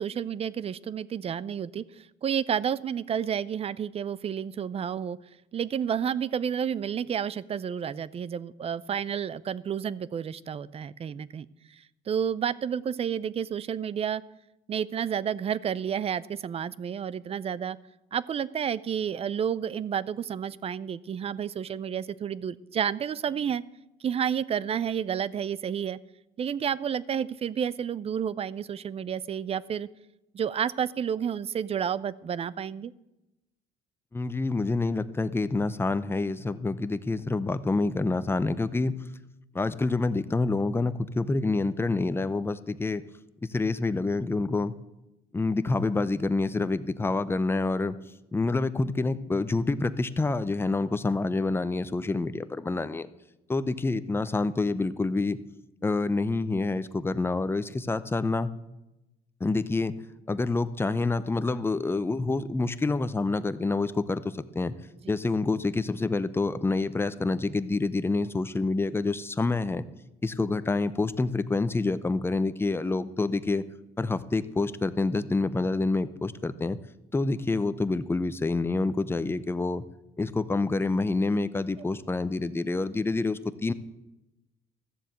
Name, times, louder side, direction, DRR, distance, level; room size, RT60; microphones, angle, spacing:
voice 1, 0.0-5.2 5.5-14.2 14.7-17.8 18.1-23.6 24.0-26.0 26.4-29.9 30.3-32.9, right 8 dB, 35° right, 20 dB, 0.5 m, -30 dB
voice 2, 34.1-39.0 39.5-43.0 43.4-44.7 45.3-48.0 48.3-53.1 53.5-55.4 55.8-58.5 59.4-59.9 60.3-64.2 64.5-64.8 65.1-69.9 70.2-73.6 74.0-76.8 77.1-79.8 80.2-83.7, left 3 dB, 15° left, 13 dB, 0.7 m, -27 dB
14.0 x 7.4 x 8.0 m, 0.95 s
cardioid pair, 110°, 17 cm